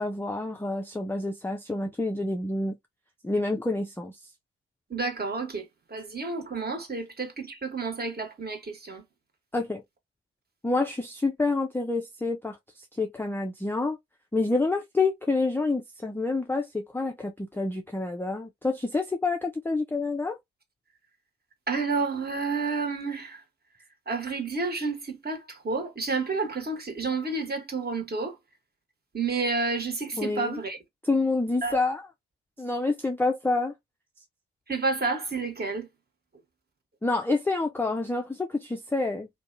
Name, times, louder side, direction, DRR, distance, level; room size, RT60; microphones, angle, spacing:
voice 1, 0.0-2.8 3.2-4.2 9.5-9.8 10.6-12.6 13.0-14.0 14.3-20.4 30.1-30.6 31.0-32.1 32.6-33.7 37.0-39.3, left 3 dB, 5° left, 0.4 m, -28 dB
voice 2, 4.9-9.0 21.7-23.4 24.1-28.4 29.1-30.8 31.6-31.8 34.7-35.9, right 4 dB, 25° right, 1.2 m, -30 dB
2.6 x 2.2 x 2.5 m
hypercardioid pair, 40°, 35 cm